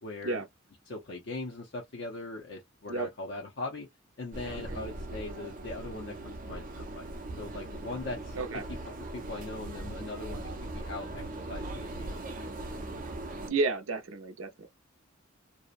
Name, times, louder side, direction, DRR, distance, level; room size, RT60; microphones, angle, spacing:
voice 1, 0.0-0.4 0.9-3.9 4.2-7.1 7.4-8.4 8.8-12.3 12.9-13.0, left 2 dB, 60° left, 0.6 m, -40 dB
sound 1, 4.3-13.5, right 2 dB, 45° right, 0.6 m, -40 dB
voice 2, 13.5-14.7, right 3 dB, 85° right, 0.6 m, -32 dB
2.7 x 2.0 x 2.4 m
head